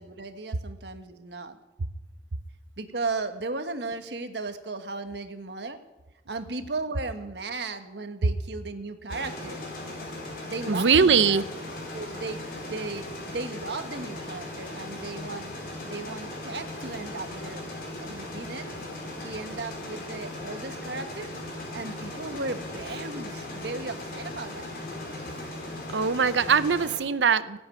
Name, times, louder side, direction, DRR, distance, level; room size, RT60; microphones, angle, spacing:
voice 1, 0.0-1.6 2.8-5.8 6.3-9.6 10.5-11.4 11.9-15.5 15.8-17.6 18.0-18.7 19.1-21.3 21.7-24.7, right 3 dB, 70° right, 8 dB, 1.4 m, -36 dB
sound 1, 9.1-27.0, left 1 dB, 55° left, 4.6 m, -38 dB
voice 2, 10.7-11.4 25.9-27.6, right 6 dB, 90° right, 14 dB, 0.7 m, -21 dB
17.5 x 7.9 x 9.6 m, 1.1 s
head